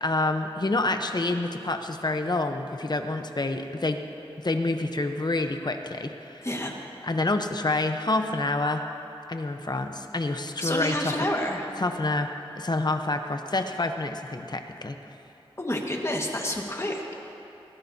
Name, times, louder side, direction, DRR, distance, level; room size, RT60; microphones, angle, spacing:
voice 1, 0.0-4.0 4.4-6.5 7.0-8.8 9.3-11.1 11.8-12.3 12.6-15.0, left 2 dB, 45° left, 6 dB, 0.9 m, -27 dB
voice 2, 6.4-6.8 10.6-11.7 15.6-17.1, left 1 dB, 25° left, 0 dB, 1.7 m, -29 dB
21.0 x 15.5 x 2.8 m, 2.9 s
wide cardioid pair, 60°, 10 cm